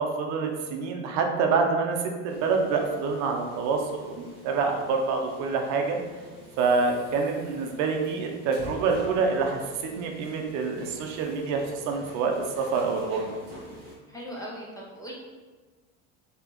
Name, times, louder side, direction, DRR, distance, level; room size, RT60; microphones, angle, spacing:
voice 1, 0.0-2.0 2.2-6.0 6.6-13.4, right 4 dB, 55° right, 3 dB, 0.6 m, -27 dB
sound 1, 2.3-14.0, equal, 30° right, 1.3 m, -46 dB
voice 2, 14.1-15.1, equal, 10° left, -5 dB, 0.5 m, -39 dB
4.1 x 2.9 x 2.9 m, 1.3 s
cardioid pair, 160°, 33 cm